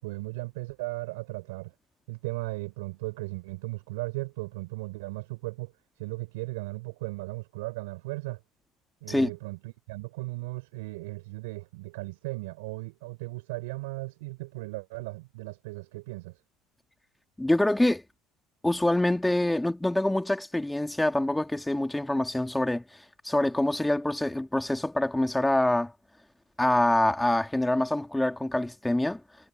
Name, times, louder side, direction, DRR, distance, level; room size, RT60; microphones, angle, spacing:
voice 1, 0.0-1.7 2.1-8.4 9.0-16.4, right 23 dB, 80° right, 7.5 m, -37 dB
voice 2, 17.4-18.0 18.6-22.8 23.2-25.9 26.6-29.2, left 1 dB, 10° left, 2.7 m, -25 dB
hypercardioid pair, 75°, 0 cm